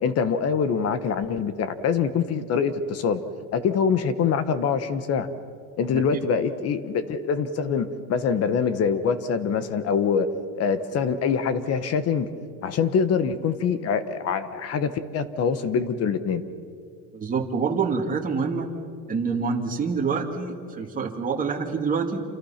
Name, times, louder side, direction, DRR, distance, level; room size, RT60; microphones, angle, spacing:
voice 1, 0.0-3.2 3.5-5.3 5.8-10.3 10.5-12.3 12.6-16.4, left 6 dB, 35° left, 12 dB, 1.3 m, -24 dB
voice 2, 17.1-18.7 19.1-22.2, right 5 dB, 20° right, 1 dB, 2.6 m, -26 dB
28.5 x 26.5 x 5.9 m, 2.3 s
supercardioid pair, 150°, 43 cm